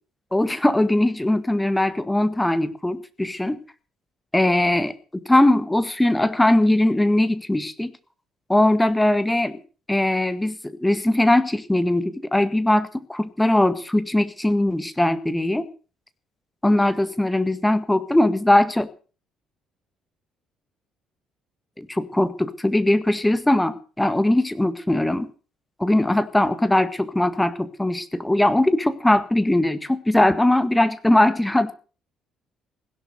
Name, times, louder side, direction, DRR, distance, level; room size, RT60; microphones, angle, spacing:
voice 1, 0.3-3.6 4.3-7.9 8.5-9.6 9.9-15.7 16.6-18.9 21.8-25.3 25.8-31.7, left 1 dB, 10° left, 12 dB, 1.8 m, -20 dB
16.5 x 11.5 x 6.9 m, 0.38 s
figure-of-eight pair, 50°, 0 cm